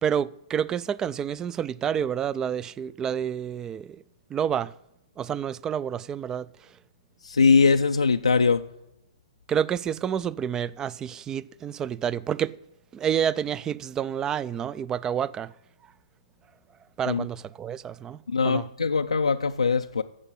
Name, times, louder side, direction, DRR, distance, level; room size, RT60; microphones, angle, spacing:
voice 1, 0.0-4.0 4.3-4.7 5.2-6.5 9.5-12.5 12.9-15.5 17.0-18.2 18.4-18.7, right 8 dB, 20° right, 0.3 m, -29 dB
voice 2, 7.2-8.6 17.1-17.2 18.3-20.0, left 4 dB, 85° left, 0.4 m, -21 dB
9.8 x 7.2 x 8.3 m
figure-of-eight pair, 120°, 3 cm